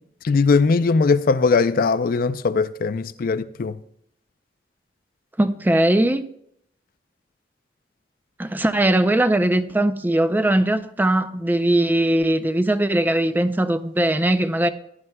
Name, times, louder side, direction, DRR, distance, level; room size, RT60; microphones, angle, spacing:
voice 1, 0.3-3.8, left 4 dB, 55° left, 0.4 m, -20 dB
voice 2, 5.4-6.3 8.4-14.7, right 1 dB, 10° right, 0.4 m, -20 dB
16.0 x 11.0 x 2.2 m
head